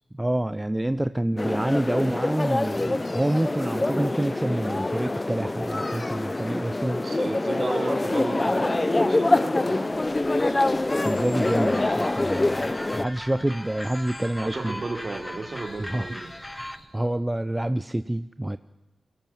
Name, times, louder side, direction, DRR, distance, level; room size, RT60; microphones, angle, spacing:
voice 1, 0.2-7.0 11.0-12.6 12.9-14.8 15.8-16.1 16.9-18.6, right 1 dB, 15° right, 13 dB, 0.6 m, -27 dB
sound 1, 1.4-13.1, left 2 dB, 30° left, 0.6 m, -25 dB
voice 2, 7.0-10.0 11.0-11.3 14.4-16.3, right 3 dB, 45° right, 5 dB, 2.9 m, -34 dB
Bird, 9.9-16.8, left 2 dB, 85° left, 6.4 m, -50 dB
sound 2, 11.3-16.8, left 1 dB, 10° left, 1.1 m, -38 dB
22.5 x 17.5 x 7.4 m, 1.1 s
cardioid pair, 50°, 0 cm